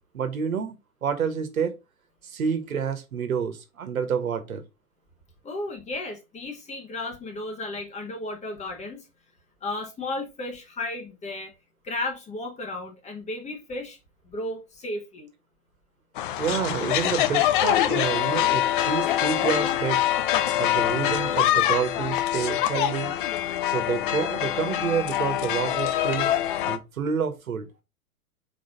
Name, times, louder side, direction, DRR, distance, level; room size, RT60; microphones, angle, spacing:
voice 1, 0.1-0.8 1.0-1.8 2.2-4.6 16.4-20.1 20.5-23.1 23.7-26.3 26.6-27.7, right 7 dB, 65° right, 1.5 m, -28 dB
voice 2, 5.4-9.1 9.6-11.5 11.8-14.0 14.2-15.3, left 2 dB, 15° left, 1.4 m, -34 dB
sound 1, 16.2-26.8, left 12 dB, 35° left, 0.6 m, -24 dB
4.5 x 4.0 x 5.2 m
figure-of-eight pair, 110°, 45 cm